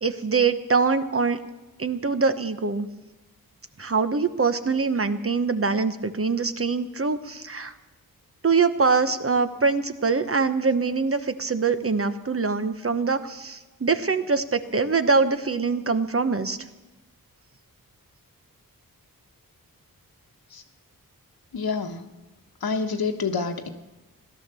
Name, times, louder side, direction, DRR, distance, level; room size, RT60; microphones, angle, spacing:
voice 1, 0.0-1.4 1.8-2.9 3.8-7.7 8.4-16.6, right 4 dB, 40° right, 10 dB, 1.0 m, -23 dB
voice 2, 21.5-22.0 22.6-23.7, left 4 dB, 90° left, 6 dB, 1.3 m, -27 dB
16.5 x 12.0 x 6.9 m, 1.1 s
wide cardioid pair, 80°, 36 cm